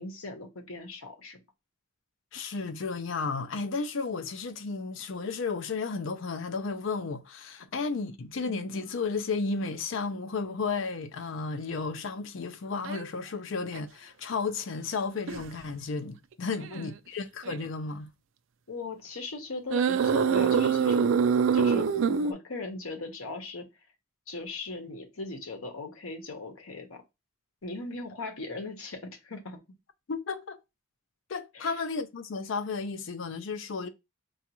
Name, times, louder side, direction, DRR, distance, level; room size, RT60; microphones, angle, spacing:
voice 1, 0.0-1.4 16.5-16.9 18.7-21.1 21.5-23.7 24.3-27.0 27.6-29.6 31.5-31.8, left 3 dB, 80° left, 0.9 m, -39 dB
voice 2, 2.3-18.1 30.1-30.6 31.3-33.9, left 4 dB, 65° left, 0.5 m, -33 dB
sound 1, 12.8-13.0 13.7-13.8 15.3-15.5 16.5-16.8 17.4-17.6 19.7-22.3, right 6 dB, 65° right, 0.3 m, -24 dB
4.9 x 2.4 x 2.9 m
head